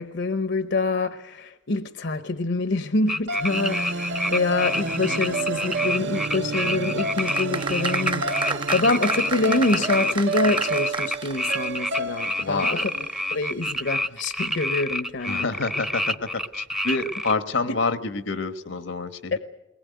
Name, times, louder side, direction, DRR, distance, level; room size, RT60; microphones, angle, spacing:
voice 1, 0.0-8.3 8.7-12.9 13.3-15.6, left 2 dB, 65° left, 11 dB, 0.9 m, -26 dB
sound 1, 3.1-17.3, left 1 dB, 5° right, 0.7 m, -28 dB
sound 2, 3.3-13.6, right 2 dB, 65° right, 0.9 m, -31 dB
sound 3, 7.1-11.6 11.9-12.0, right 3 dB, 25° right, 0.9 m, -29 dB
voice 2, 12.4-12.8 15.3-16.3 16.5-19.4, left 3 dB, 85° left, 11 dB, 1.3 m, -27 dB
22.0 x 19.5 x 9.4 m, 0.97 s
head